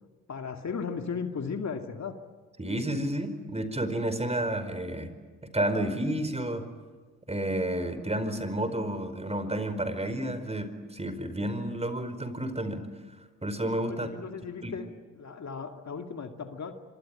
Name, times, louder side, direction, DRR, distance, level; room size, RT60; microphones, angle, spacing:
voice 1, 0.3-2.2 13.9-14.9 15.2-16.7, left 5 dB, 45° left, 5 dB, 2.4 m, -36 dB
voice 2, 2.6-5.1 5.4-6.7 7.3-12.8 13.4-14.1 14.6-14.7, right 1 dB, 15° right, 10 dB, 4.8 m, -31 dB
25.5 x 25.0 x 9.0 m, 1.4 s
hypercardioid pair, 50°, 38 cm